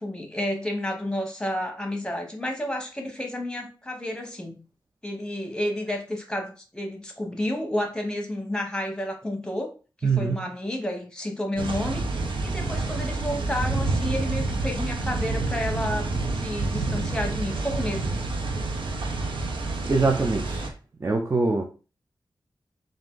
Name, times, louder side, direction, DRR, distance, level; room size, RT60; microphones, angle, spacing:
voice 1, 0.0-4.6 5.0-9.7 10.0-18.1, left 1 dB, 10° left, 0.9 m, -31 dB
voice 2, 10.0-10.5 19.0-19.1 19.9-20.7 21.0-21.6, right 3 dB, 30° right, 0.5 m, -24 dB
sound 1, 11.6-20.7, right 3 dB, 75° right, 0.7 m, -28 dB
3.6 x 2.5 x 3.7 m
wide cardioid pair, 115°, 8 cm